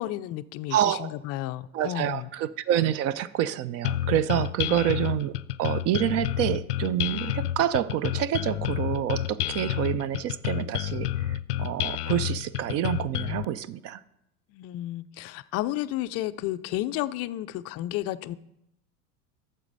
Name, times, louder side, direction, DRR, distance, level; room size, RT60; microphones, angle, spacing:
voice 1, 0.0-2.3 4.6-4.8 14.5-18.4, left 14 dB, 35° left, 13 dB, 0.5 m, -32 dB
voice 2, 0.7-1.1 1.7-5.3 5.6-14.0, right 11 dB, 35° right, 18 dB, 0.5 m, -27 dB
sound 1, 3.8-13.4, left 12 dB, 85° left, 0.5 m, -29 dB
11.5 x 7.5 x 4.0 m, 0.82 s
hypercardioid pair, 95°, 46 cm